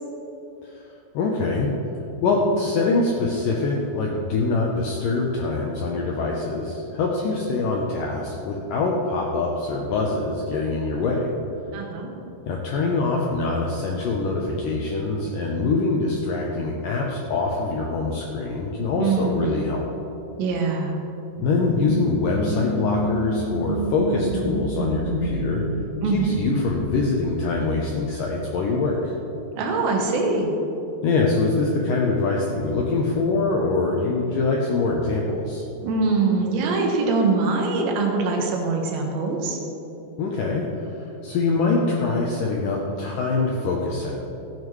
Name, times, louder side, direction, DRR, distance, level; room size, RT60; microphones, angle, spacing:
voice 1, 1.1-1.7 2.2-11.2 12.5-19.9 21.4-25.6 26.1-29.1 31.0-35.6 40.2-44.1, left 3 dB, 80° left, -1 dB, 1.9 m, -24 dB
voice 2, 11.7-12.1 19.0-19.5 20.4-20.9 26.0-26.4 29.6-30.5 35.8-39.6, right 4 dB, 90° right, 1 dB, 3.5 m, -23 dB
sound 1, 21.3-27.8, right 1 dB, 25° left, 1.9 m, -29 dB
14.5 x 9.4 x 3.2 m, 3.0 s
omnidirectional pair, 5.0 m